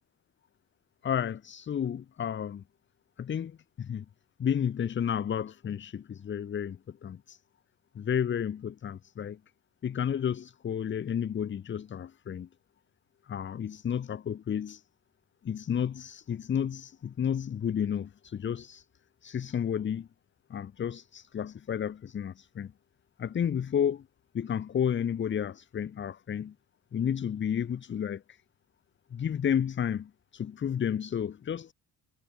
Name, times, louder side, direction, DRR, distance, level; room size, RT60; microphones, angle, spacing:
voice 1, 1.0-2.6 3.2-4.1 4.4-7.4 7.9-9.4 9.8-12.5 13.3-14.8 15.4-18.9 19.2-20.1 20.5-22.7 23.2-24.1 24.3-26.5 26.9-28.4 29.1-31.7, left 8 dB, 35° left, 2.2 m, -32 dB
cardioid pair, 175°, 32 cm